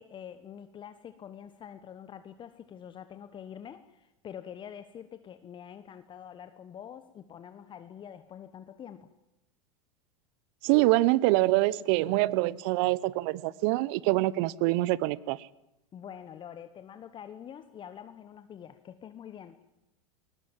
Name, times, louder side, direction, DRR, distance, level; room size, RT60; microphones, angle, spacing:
voice 1, 0.0-9.1 15.9-19.6, left 9 dB, 30° left, 11 dB, 1.2 m, -46 dB
voice 2, 10.6-15.4, right 19 dB, 55° right, 21 dB, 0.9 m, -25 dB
22.0 x 19.5 x 7.5 m, 0.89 s
hypercardioid pair, 90°, 16 cm